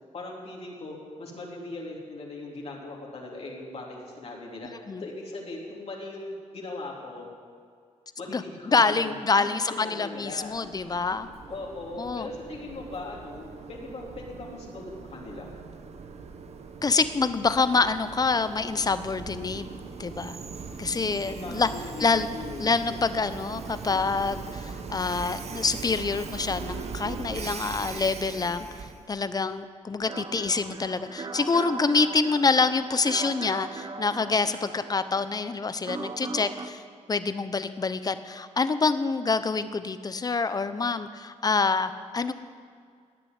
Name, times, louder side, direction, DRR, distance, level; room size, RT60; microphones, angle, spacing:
voice 1, 0.1-4.7 5.0-7.3 8.2-10.5 11.5-15.5 21.3-22.1 22.3-22.7, left 2 dB, 55° left, -2 dB, 3.2 m, -39 dB
voice 2, 8.3-11.3 12.0-12.3 16.8-19.6 20.0-20.4 20.8-21.7 22.0-22.3 22.6-36.8 37.1-42.3, left 4 dB, 30° left, 12 dB, 0.8 m, -26 dB
Train, 10.3-29.1, right 5 dB, 55° right, 1.2 m, -40 dB
sound 1, 30.1-36.7, right 4 dB, 35° right, 1.0 m, -39 dB
18.0 x 6.9 x 9.5 m, 2.1 s
cardioid pair, 95°, 13 cm